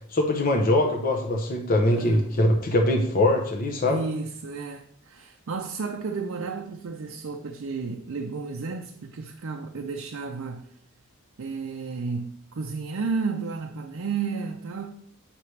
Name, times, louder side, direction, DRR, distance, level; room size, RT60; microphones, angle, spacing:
voice 1, 0.1-4.0, left 1 dB, 40° left, 0.8 m, -22 dB
voice 2, 1.9-2.5 3.8-10.7 11.4-14.9, right 4 dB, 65° right, 0.5 m, -32 dB
8.1 x 5.8 x 3.2 m
head